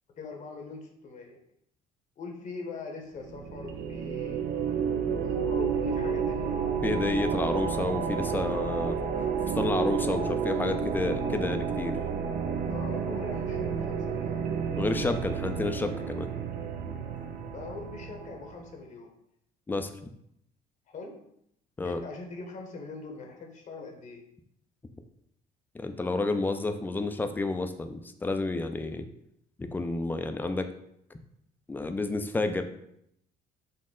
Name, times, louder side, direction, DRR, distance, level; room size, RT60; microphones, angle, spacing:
voice 1, 0.2-1.4 2.2-4.4 5.0-6.7 12.7-14.5 17.5-19.1 20.9-21.1 21.8-24.2, left 4 dB, 50° left, 2 dB, 0.8 m, -42 dB
sound 1, 3.2-18.6, right 6 dB, 65° right, 0.4 m, -31 dB
voice 2, 6.8-9.0 9.6-11.9 14.8-16.3 19.7-19.9 21.8-22.0 25.7-29.1 29.6-30.7 31.7-32.6, left 2 dB, 10° left, 7 dB, 0.3 m, -30 dB
3.9 x 2.1 x 3.7 m, 0.74 s
cardioid pair, 110°, 17 cm